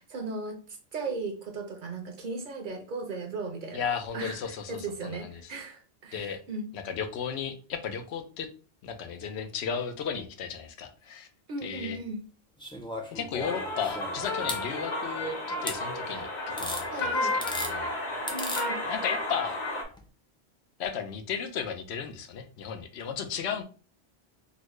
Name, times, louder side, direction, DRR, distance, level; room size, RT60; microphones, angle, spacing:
voice 1, 0.1-3.9 4.1-6.7 11.5-12.2 16.9-17.4 18.3-18.8, right 3 dB, 55° right, 4 dB, 0.7 m, -37 dB
voice 2, 3.7-5.3 6.1-6.4 6.7-8.5 8.8-11.3 11.6-12.0 13.1-16.3 16.6-17.9 18.8-19.6 20.8-23.6, left 7 dB, 90° left, 6 dB, 0.9 m, -34 dB
sound 1, 12.6-14.6 15.7-15.8 16.6-16.8 17.3-17.7 18.3-18.7 19.9-20.0, left 1 dB, 10° left, 0.3 m, -36 dB
sound 2, 13.4-19.8, left 2 dB, 50° left, 0.8 m, -32 dB
4.0 x 2.0 x 3.0 m, 0.37 s
omnidirectional pair, 1.1 m